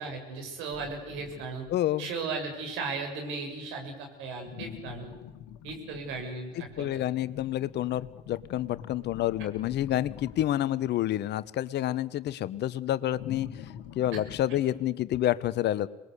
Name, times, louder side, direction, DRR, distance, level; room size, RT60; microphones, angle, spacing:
voice 1, 0.0-1.7 2.0-5.1 5.6-6.9 14.1-14.2, right 4 dB, 70° right, 3 dB, 7.1 m, -36 dB
sound 1, 0.7-1.7 4.5-10.7 13.1-14.4, left 10 dB, 75° left, 2.1 m, -45 dB
voice 2, 1.7-2.1 6.8-13.5 13.9-15.9, left 13 dB, 55° left, 16 dB, 1.1 m, -28 dB
26.5 x 21.0 x 8.3 m, 1.0 s
hypercardioid pair, 70°, 21 cm